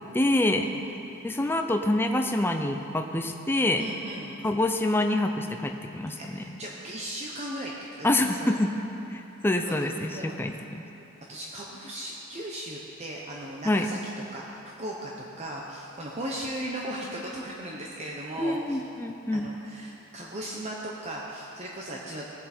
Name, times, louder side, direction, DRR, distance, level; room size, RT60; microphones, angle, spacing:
voice 1, 0.1-0.7 1.2-3.8 4.4-6.4 8.0-8.7 9.1-10.8 13.6-13.9 18.4-19.5, left 1 dB, 10° left, 4 dB, 0.4 m, -26 dB
voice 2, 3.8-4.4 6.2-7.7 8.0-8.1 8.4-8.5 9.6-9.7 10.1-10.5 11.3-14.0 14.3-15.1 15.4-18.8 19.3-22.3, right 1 dB, 30° right, -3 dB, 0.9 m, -37 dB
18.0 x 7.4 x 4.4 m, 2.9 s
head